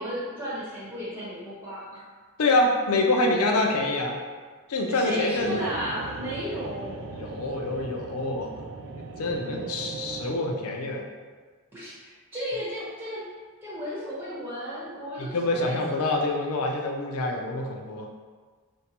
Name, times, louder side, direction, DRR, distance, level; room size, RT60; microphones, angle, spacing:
voice 1, 0.0-2.0 4.9-7.1 11.7-13.2 13.6-15.9, equal, 10° right, -9 dB, 1.0 m, -34 dB
voice 2, 2.4-4.2 4.7-5.6 7.2-8.5 8.8-11.0 15.2-18.1, left 2 dB, 80° left, 1 dB, 0.5 m, -26 dB
sound 1, 5.4-10.4, right 4 dB, 65° right, 0.3 m, -39 dB
5.2 x 2.2 x 2.9 m, 1.5 s
head